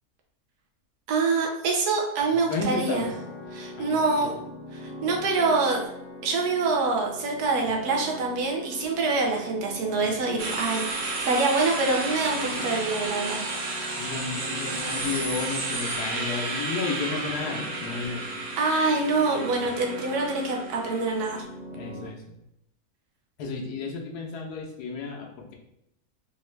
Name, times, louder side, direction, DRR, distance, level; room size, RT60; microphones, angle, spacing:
voice 1, 1.1-3.1 3.5-4.3 4.7-5.8 6.2-13.5 13.9-14.1 18.6-21.5, right 3 dB, 90° right, 1 dB, 1.2 m, -25 dB
voice 2, 2.2-3.1 3.8-4.4 14.0-18.4 21.7-22.3 23.4-25.5, left 4 dB, 80° left, 1 dB, 1.3 m, -33 dB
sound 1, 2.8-22.1, left 1 dB, 60° left, 1.0 m, -41 dB
sound 2, 10.4-21.4, right 3 dB, 60° right, 1.0 m, -32 dB
4.1 x 2.3 x 3.2 m, 0.80 s
omnidirectional pair, 1.6 m